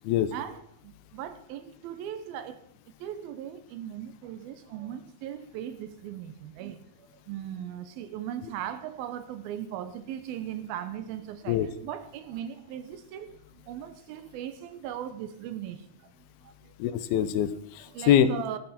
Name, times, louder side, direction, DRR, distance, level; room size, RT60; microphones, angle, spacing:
voice 1, 0.3-2.6 3.0-16.1 16.4-16.7 17.9-18.6, right 10 dB, 75° right, 2.5 m, -38 dB
voice 2, 16.8-18.6, left 10 dB, 75° left, 2.5 m, -24 dB
14.5 x 11.5 x 4.3 m
omnidirectional pair, 4.6 m